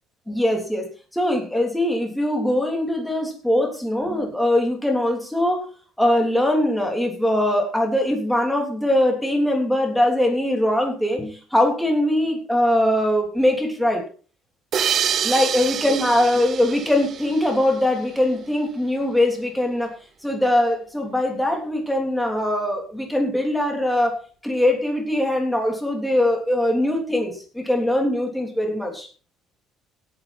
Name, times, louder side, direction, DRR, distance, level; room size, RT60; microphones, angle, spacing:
voice 1, 0.3-0.9 1.1-5.6 6.0-14.0 15.2-19.9 20.2-24.2 24.4-29.1, left 1 dB, 5° left, 2 dB, 3.3 m, -21 dB
sound 1, 14.7-18.1, right 9 dB, 40° right, 0.7 m, -26 dB
17.0 x 8.7 x 4.3 m, 0.39 s
cardioid pair, 155°, 0 cm